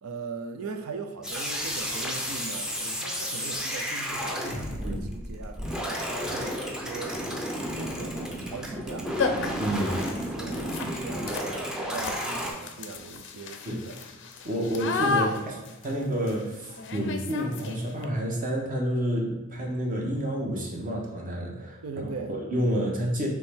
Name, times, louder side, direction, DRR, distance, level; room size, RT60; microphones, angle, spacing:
voice 1, 0.0-7.3 7.7-9.1 10.0-14.0 21.8-22.3, right 4 dB, 80° right, 6 dB, 0.5 m, -40 dB
sound 1, 1.2-12.5, equal, 5° right, 0.5 m, -32 dB
sound 2, 5.7-5.8 6.4-6.7 8.4-8.6 8.9-9.0 9.2-18.0, left 4 dB, 60° left, 0.4 m, -33 dB
voice 2, 9.6-10.0 13.7-13.9 14.4-21.8 22.4-23.3, equal, 40° right, -1 dB, 0.9 m, -29 dB
4.3 x 3.1 x 3.5 m, 1.1 s
head